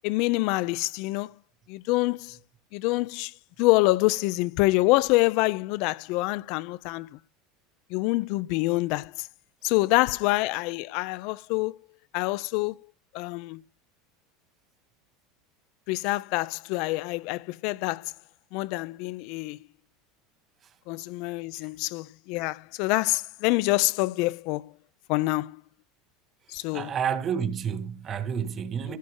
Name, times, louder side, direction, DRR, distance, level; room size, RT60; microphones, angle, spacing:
voice 1, 0.0-1.4 1.7-2.4 2.7-7.1 7.9-9.3 9.6-11.8 12.1-12.8 13.1-13.6 15.9-18.1 18.5-19.6 20.9-24.7 25.1-25.6 26.5-26.9, left 21 dB, 65° left, 0.5 m, -26 dB
voice 2, 26.7-29.0, right 7 dB, 35° right, 2.1 m, -30 dB
16.0 x 7.6 x 3.8 m
supercardioid pair, 115°, 0 cm